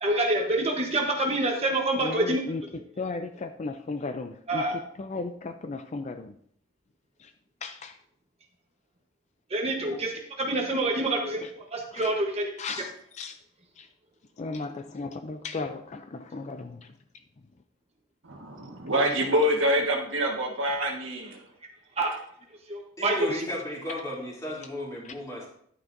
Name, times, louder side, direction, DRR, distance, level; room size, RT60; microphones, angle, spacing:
voice 1, 0.0-2.4 4.5-4.8 9.5-12.4 22.0-22.2 22.7-23.3, right 1 dB, 30° right, 1 dB, 1.1 m, -27 dB
voice 2, 1.9-4.7 5.0-6.4 7.2-7.3 7.6-8.0 11.4-11.5 11.9-12.1 12.6-13.4 13.8-13.9 14.4-16.9, left 3 dB, 35° left, 8 dB, 0.4 m, -36 dB
voice 3, 18.2-21.4, equal, 75° right, 2 dB, 1.5 m, -26 dB
voice 4, 23.0-25.5, left 1 dB, 15° left, -5 dB, 2.9 m, -35 dB
10.5 x 9.2 x 2.6 m, 0.65 s
head